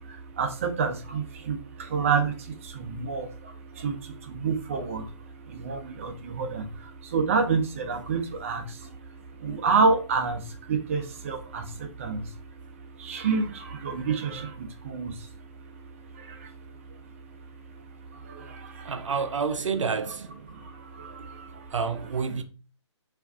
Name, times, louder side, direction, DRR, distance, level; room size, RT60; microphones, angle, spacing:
voice 1, 0.0-5.2 5.5-9.1 9.4-12.3 13.0-15.3 16.1-16.6 18.1-18.9 20.5-21.7, right 5 dB, 25° right, 0.4 m, -29 dB
voice 2, 18.8-20.3 21.7-22.4, right 5 dB, 80° right, 0.5 m, -28 dB
3.3 x 2.4 x 2.3 m
hypercardioid pair, 155°, 16 cm